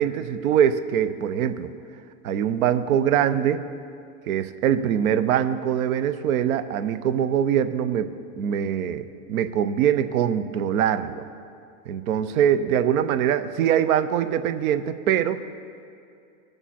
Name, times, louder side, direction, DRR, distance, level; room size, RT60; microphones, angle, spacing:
voice 1, 0.0-1.7 2.2-3.7 4.3-11.3 11.9-15.4, right 9 dB, 75° right, 11 dB, 0.8 m, -23 dB
20.0 x 7.0 x 4.3 m, 2.4 s
supercardioid pair, 125°, 42 cm